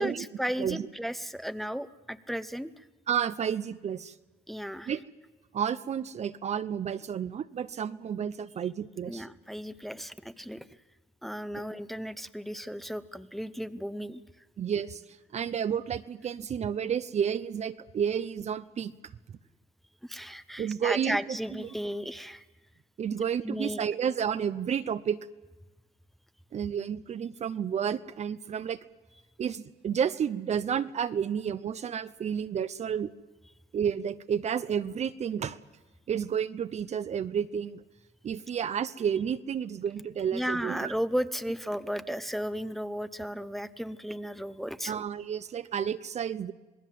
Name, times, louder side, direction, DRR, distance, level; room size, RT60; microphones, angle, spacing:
voice 1, 0.0-2.8 4.5-4.9 9.1-10.7 11.2-14.2 20.0-22.4 23.4-23.9 40.3-44.9, equal, ahead, 12 dB, 0.8 m, -34 dB
voice 2, 3.1-4.1 4.9-5.0 5.5-9.3 14.6-15.0 15.3-18.9 20.6-21.7 23.0-25.2 26.5-28.8 29.4-33.1 33.7-35.6 36.1-37.8 38.2-40.9 44.9-46.5, right 8 dB, 40° right, 13 dB, 0.7 m, -31 dB
26.5 x 19.5 x 7.6 m, 1.2 s
cardioid pair, 110°, 17 cm